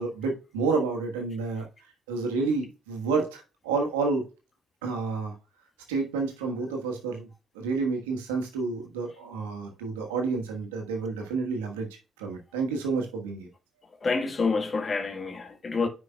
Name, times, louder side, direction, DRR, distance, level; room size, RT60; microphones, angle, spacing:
voice 1, 0.0-1.6 2.1-4.2 4.8-5.3 5.9-7.3 7.5-11.9 12.2-13.5, right 4 dB, 85° right, 1.3 m, -29 dB
voice 2, 14.0-15.9, left 4 dB, 40° left, 1.4 m, -27 dB
9.7 x 5.1 x 2.3 m
hypercardioid pair, 50°, 0 cm